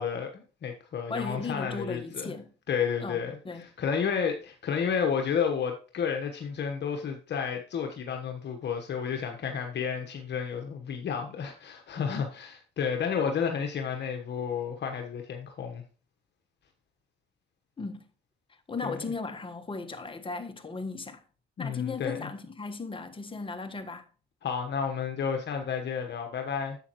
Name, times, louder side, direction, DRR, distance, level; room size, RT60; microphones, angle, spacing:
voice 1, 0.0-2.3 2.7-15.8 18.8-19.0 21.6-22.3 24.4-26.8, left 6 dB, 60° left, 1.2 m, -31 dB
voice 2, 1.1-2.5 3.0-3.6 17.8-18.0 18.7-21.2 21.6-24.0, left 4 dB, 25° left, 1.4 m, -36 dB
11.0 x 7.6 x 3.1 m
cardioid pair, 90°, 20 cm